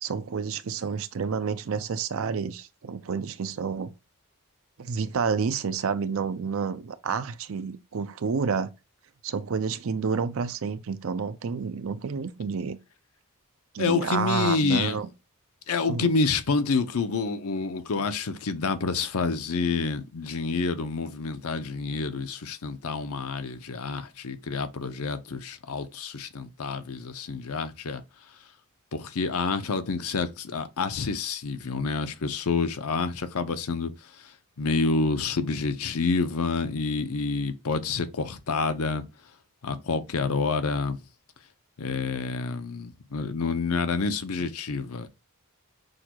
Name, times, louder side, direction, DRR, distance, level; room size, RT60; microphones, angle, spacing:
voice 1, 0.0-3.9 4.8-8.7 9.2-12.8 13.7-15.1 15.9-16.1, right 5 dB, 60° right, 0.5 m, -29 dB
voice 2, 13.8-15.0 15.7-28.0 28.9-33.9 34.6-39.0 39.6-41.0 41.8-45.1, left 4 dB, 75° left, 0.7 m, -28 dB
6.3 x 2.3 x 2.9 m
head